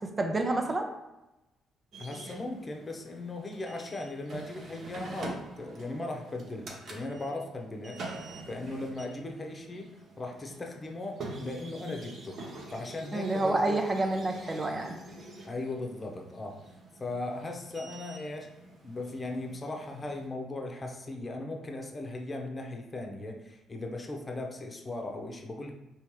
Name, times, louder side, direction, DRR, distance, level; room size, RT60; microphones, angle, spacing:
voice 1, 0.0-0.9 13.1-15.0, right 2 dB, 30° right, 4 dB, 0.8 m, -29 dB
sound 1, 1.9-20.3, right 2 dB, 55° right, 1.0 m, -46 dB
voice 2, 2.0-8.0 8.5-9.9 10.2-12.4 12.7-13.8 15.5-16.6 17.0-18.5 18.8-25.7, left 2 dB, 35° left, 2 dB, 1.0 m, -38 dB
4.5 x 3.2 x 3.1 m, 0.97 s
hypercardioid pair, 45°, 0 cm